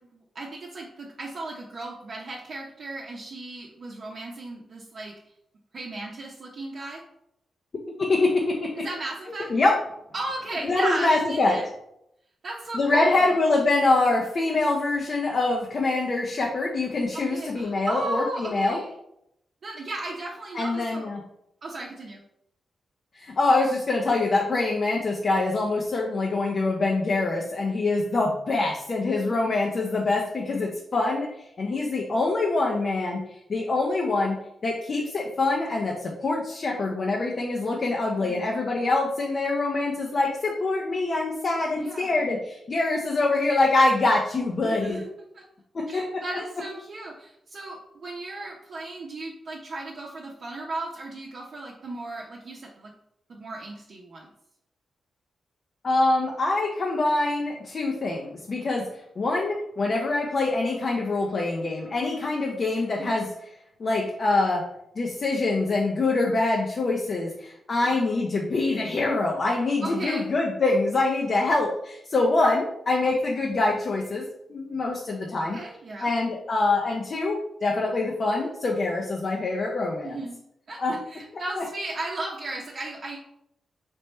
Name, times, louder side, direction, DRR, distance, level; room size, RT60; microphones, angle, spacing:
voice 1, 0.1-5.1 5.7-7.0 8.8-9.5 10.1-11.6 12.4-13.4 17.1-18.9 19.6-21.1 21.6-22.2 29.3-29.6 38.2-38.4 41.8-42.2 44.6-45.1 45.3-45.4 45.9-52.9 53.3-54.3 63.0-63.2 67.8-68.0 69.8-70.3 75.4-76.1 80.0-80.4 80.7-80.8 81.1-83.2, right 2 dB, 55° right, -3 dB, 0.7 m, -35 dB
voice 2, 8.0-8.9 9.5-9.8 10.6-11.5 12.7-18.8 20.5-21.2 23.1-34.4 34.6-45.0 45.7-46.2 55.8-58.9 59.2-63.3 63.8-64.6 65.0-74.2 74.5-75.6 76.0-80.2 80.8-81.0 81.6-81.7, left 2 dB, 50° left, -1 dB, 0.7 m, -25 dB
3.3 x 3.2 x 4.3 m, 0.77 s
cardioid pair, 80°, 0 cm